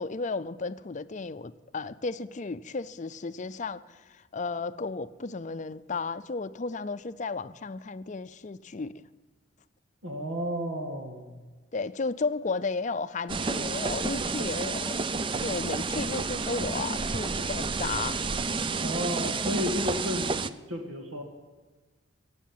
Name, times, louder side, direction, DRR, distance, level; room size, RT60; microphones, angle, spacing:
voice 1, 0.0-4.0 4.3-9.0 11.7-14.9 15.4-18.3, left 4 dB, 40° left, 0.5 m, -34 dB
voice 2, 10.0-11.4 18.8-21.2, equal, 85° right, 1.9 m, -32 dB
sound 1, 13.3-20.5, right 4 dB, 25° right, 0.4 m, -30 dB
17.5 x 7.9 x 9.4 m
head